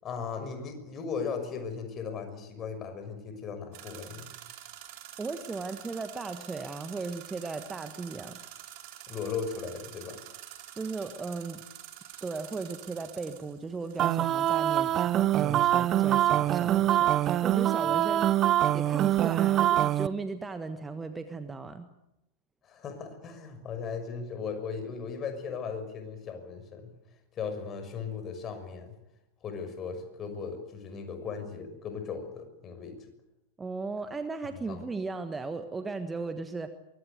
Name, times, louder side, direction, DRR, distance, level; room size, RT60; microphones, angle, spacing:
voice 1, 0.0-4.3 9.1-10.2 22.6-26.9 27.3-29.0 29.4-33.0 34.7-34.8, left 5 dB, 30° left, 7 dB, 6.2 m, -37 dB
sound 1, 3.7-15.2, right 12 dB, 45° right, 4.4 m, -47 dB
voice 2, 5.2-8.4 10.8-11.6 12.2-18.3 18.7-21.9 33.6-36.7, right 4 dB, 15° right, 9 dB, 1.5 m, -36 dB
sound 2, 14.0-20.1, right 12 dB, 30° right, 0.9 m, -24 dB
24.0 x 23.0 x 8.1 m, 0.90 s
figure-of-eight pair, 90°, 0 cm